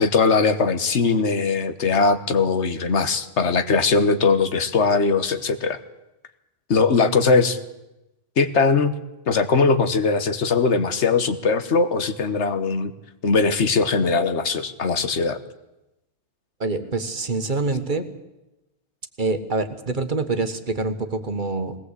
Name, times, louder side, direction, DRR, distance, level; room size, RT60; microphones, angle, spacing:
voice 1, 0.0-5.8 6.7-7.6 8.4-8.9 9.3-12.9 13.2-15.4, left 4 dB, 90° left, 11 dB, 1.5 m, -20 dB
voice 2, 16.6-18.1 19.2-21.8, right 3 dB, 45° right, 8 dB, 1.5 m, -25 dB
20.5 x 18.0 x 8.3 m, 0.96 s
omnidirectional pair, 1.1 m